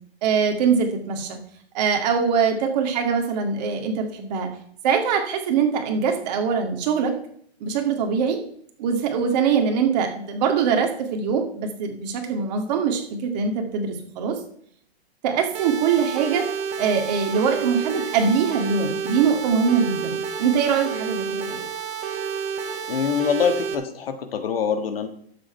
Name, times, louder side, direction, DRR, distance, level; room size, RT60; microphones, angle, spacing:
voice 1, 0.2-1.4 1.7-4.5 4.8-7.1 7.6-8.4 8.8-14.3 15.2-16.4 16.8-21.6, right 6 dB, 40° right, 4 dB, 2.1 m, -23 dB
sound 1, 15.5-23.7, right 7 dB, 20° right, 1.2 m, -30 dB
voice 2, 22.9-25.1, left 7 dB, 60° left, 8 dB, 1.6 m, -24 dB
11.5 x 7.7 x 4.4 m, 0.63 s
hypercardioid pair, 145°, 33 cm